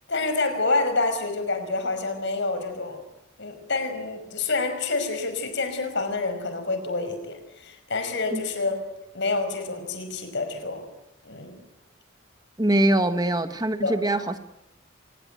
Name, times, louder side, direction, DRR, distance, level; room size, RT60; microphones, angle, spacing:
voice 1, 0.1-3.0 3.4-8.8 9.1-10.8 11.2-11.6 13.8-14.0, left 3 dB, 60° left, 8 dB, 5.5 m, -27 dB
voice 2, 12.6-14.4, right 1 dB, 20° right, 9 dB, 1.3 m, -23 dB
25.5 x 21.0 x 9.1 m, 0.88 s
head